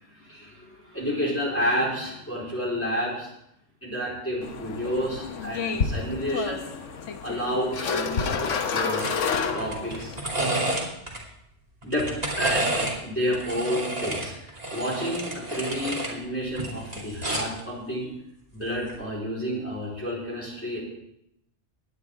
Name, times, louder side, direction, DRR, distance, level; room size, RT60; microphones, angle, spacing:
voice 1, 0.1-3.3 3.8-6.7 7.2-9.1 9.5-10.7 11.8-18.1 18.5-20.8, equal, 10° left, -5 dB, 4.2 m, -30 dB
sound 1, 4.4-10.2, left 5 dB, 80° left, 1.3 m, -29 dB
sound 2, 8.9-9.2 9.5-11.2 11.8-13.0 13.3-16.1 16.5-17.6 18.8-19.0, right 2 dB, 30° right, 2.9 m, -30 dB
18.5 x 11.0 x 3.6 m, 0.78 s
omnidirectional pair, 1.3 m